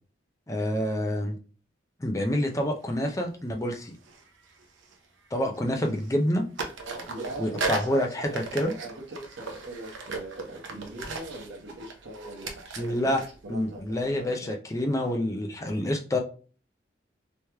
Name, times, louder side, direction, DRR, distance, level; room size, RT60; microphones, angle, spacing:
voice 1, 0.5-1.4 2.0-3.9 5.3-6.4 7.4-8.7 12.8-13.2 13.5-16.2, left 1 dB, 15° left, 2 dB, 0.5 m, -27 dB
sound 1, 2.4-2.6 4.0-5.3 5.5-6.3 6.6-14.3, right 3 dB, 85° right, 0.7 m, -38 dB
voice 2, 6.8-8.4 8.7-14.6, right 2 dB, 65° right, -1 dB, 1.1 m, -41 dB
3.2 x 3.1 x 3.3 m, 0.40 s
head